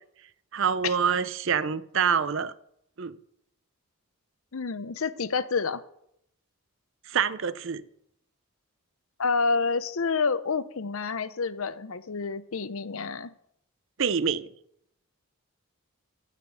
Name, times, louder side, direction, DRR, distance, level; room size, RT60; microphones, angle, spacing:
voice 1, 0.5-2.5 3.0-3.2 7.1-7.8 14.0-14.5, right 6 dB, 60° right, 0.5 m, -26 dB
voice 2, 4.5-5.8 9.2-13.3, left 4 dB, 70° left, 0.7 m, -28 dB
13.0 x 6.0 x 8.2 m
head